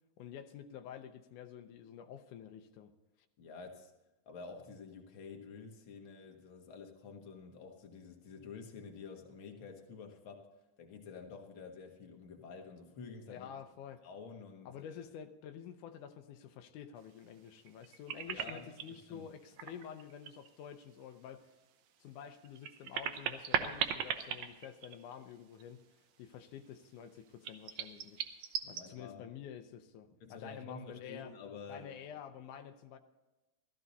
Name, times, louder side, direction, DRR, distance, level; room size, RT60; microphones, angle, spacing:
voice 1, 0.2-2.9 13.3-14.0 14.7-21.5 22.0-25.8 26.2-28.3 28.7-31.3 31.7-33.0, left 8 dB, 85° left, 8 dB, 2.2 m, -49 dB
voice 2, 3.4-3.9 4.3-10.5 10.8-13.5 14.0-15.0 18.3-19.3 28.6-29.3 30.2-31.9, left 5 dB, 50° left, 2 dB, 1.9 m, -49 dB
sound 1, 17.7-19.0 19.5-20.5 20.8-20.9 22.4-25.3 25.6-25.7 27.4-28.8, right 9 dB, 75° right, 2.1 m, -37 dB
15.5 x 13.5 x 4.1 m, 1.1 s
omnidirectional pair, 3.5 m